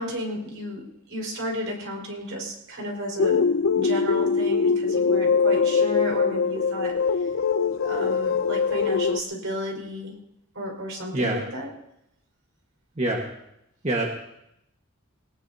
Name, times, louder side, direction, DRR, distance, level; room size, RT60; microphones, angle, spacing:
voice 1, 0.0-3.4 3.7-7.0 7.8-10.1 10.5-11.7, equal, 70° right, 0 dB, 4.7 m, -33 dB
sound 1, 3.2-9.2, left 5 dB, 75° left, 0.5 m, -22 dB
voice 2, 11.1-11.4 13.0-13.3 13.8-14.1, right 1 dB, 35° right, 0 dB, 1.5 m, -25 dB
21.0 x 19.0 x 2.8 m, 0.81 s
head